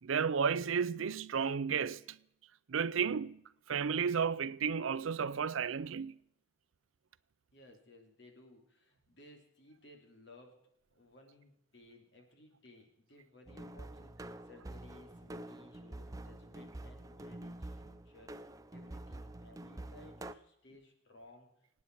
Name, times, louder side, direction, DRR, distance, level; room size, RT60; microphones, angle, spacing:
voice 1, 0.0-2.2 2.7-3.4 3.7-6.2, right 6 dB, 90° right, 0.5 m, -33 dB
voice 2, 7.5-18.3 18.7-21.5, left 1 dB, 60° left, 2.8 m, -59 dB
sound 1, 13.5-20.3, right 1 dB, 15° right, 0.5 m, -47 dB
25.5 x 9.5 x 4.6 m
head